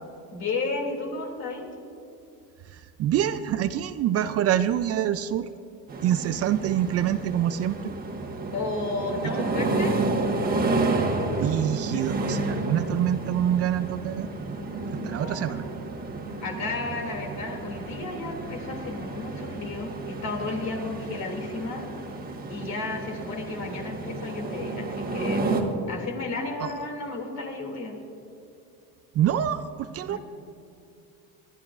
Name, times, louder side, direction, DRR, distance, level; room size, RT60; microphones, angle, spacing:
voice 1, 0.3-1.7 8.5-10.0 15.1-15.7 16.4-21.9 22.5-25.5 25.9-28.0 30.1-30.2, left 3 dB, 50° left, 1 dB, 2.6 m, -33 dB
voice 2, 2.7-5.5 6.0-7.9 9.4-9.5 11.2-14.3 14.9-15.6 26.6-26.7 29.1-30.2, right 11 dB, 45° right, 12 dB, 0.4 m, -26 dB
sound 1, 5.9-25.6, right 2 dB, 25° right, 1.4 m, -31 dB
25.0 x 11.0 x 2.5 m, 2.5 s
cardioid pair, 125°, 35 cm